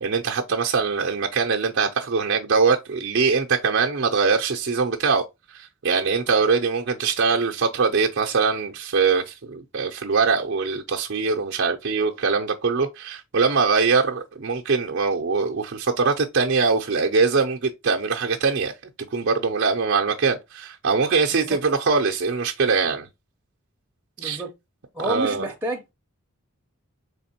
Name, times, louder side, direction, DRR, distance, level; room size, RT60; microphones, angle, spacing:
voice 1, 0.0-5.2 5.5-18.7 19.1-23.1 24.2-24.4 25.0-25.4, right 4 dB, 55° right, 0.6 m, -22 dB
voice 2, 24.2-24.5 24.9-25.8, right 1 dB, 10° right, 0.7 m, -29 dB
3.6 x 3.4 x 4.2 m
head